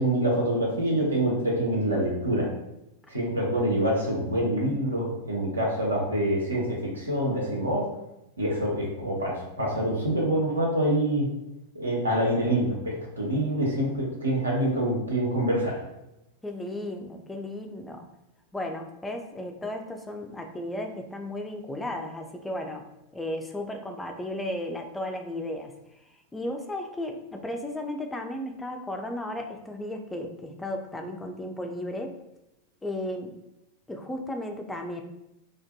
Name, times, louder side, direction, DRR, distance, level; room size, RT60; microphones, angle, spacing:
voice 1, 0.0-2.5 3.1-7.8 8.4-11.3 11.7-15.8, right 1 dB, 75° right, -3 dB, 0.7 m, -26 dB
voice 2, 16.4-18.1 18.5-22.9 23.1-25.7 26.3-32.1 32.8-33.4 33.9-35.0, left 1 dB, 10° left, 3 dB, 0.3 m, -34 dB
2.5 x 2.2 x 2.2 m, 0.89 s
figure-of-eight pair, 90°, 0 cm